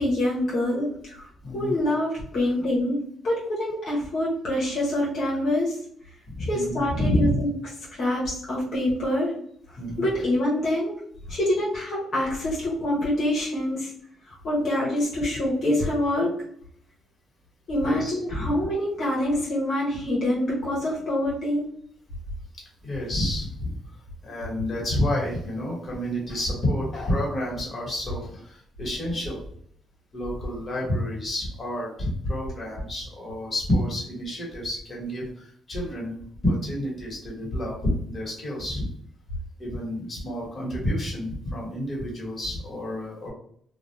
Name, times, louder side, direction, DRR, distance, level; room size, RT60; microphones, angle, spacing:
voice 1, 0.0-1.3 1.5-3.0 3.2-5.8 6.5-7.5 7.9-9.4 9.7-11.0 11.3-13.9 14.4-16.3 17.7-21.7, left 1 dB, 60° left, -6 dB, 0.9 m, -25 dB
voice 2, 1.4-1.7 6.3-7.4 9.8-10.0 17.8-18.5 22.8-24.0 24.2-29.4 30.1-36.1 36.4-38.9 39.6-43.3, left 1 dB, 30° left, -4 dB, 1.3 m, -29 dB
2.4 x 2.1 x 3.1 m, 0.64 s
cardioid pair, 90°, 0 cm